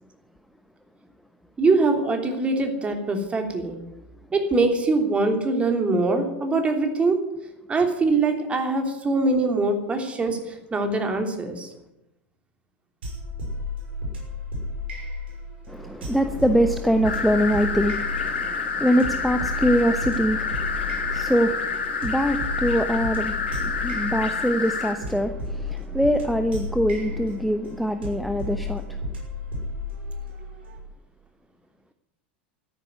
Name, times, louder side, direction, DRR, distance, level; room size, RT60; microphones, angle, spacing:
voice 1, 1.6-3.8 4.3-7.2 7.7-11.7, right 3 dB, 20° right, 5 dB, 3.2 m, -23 dB
sound 1, 13.0-30.8, left 2 dB, 70° right, 6.2 m, -33 dB
voice 2, 15.7-29.0, equal, ahead, 7 dB, 1.0 m, -24 dB
sound 2, 17.0-24.9, left 5 dB, 80° left, 3.4 m, -28 dB
13.5 x 10.5 x 9.4 m, 0.90 s
figure-of-eight pair, 90°, 6 cm